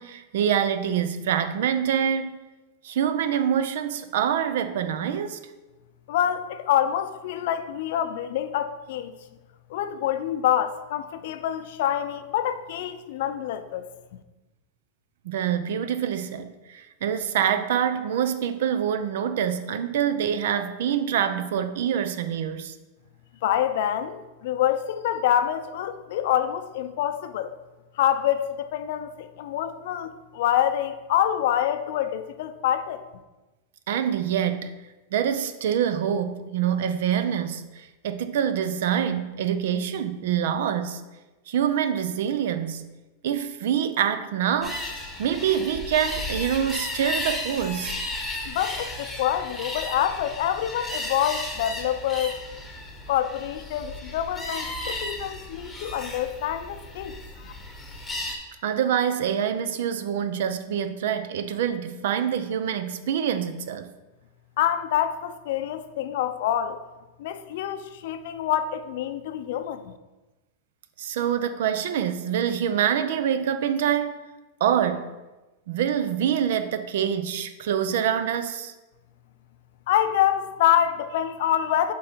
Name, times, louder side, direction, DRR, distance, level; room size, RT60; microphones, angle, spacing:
voice 1, 0.0-2.4 2.8-5.4 15.2-22.7 33.9-34.7 35.1-41.0 41.5-42.9 43.2-44.8 45.2-48.0 58.6-63.9 71.0-74.2 74.6-75.1 75.7-78.7, right 9 dB, 70° right, 10 dB, 0.5 m, -25 dB
voice 2, 6.1-9.1 9.7-13.9 23.4-27.5 28.0-33.1 48.5-52.4 53.1-57.1 57.4-57.5 64.6-66.8 67.2-69.9 79.9-81.9, left 11 dB, 65° left, 11 dB, 0.5 m, -26 dB
sound 1, 44.6-58.4, left 2 dB, 5° left, 1.1 m, -34 dB
7.5 x 3.9 x 4.4 m, 1.1 s
supercardioid pair, 145°, 0 cm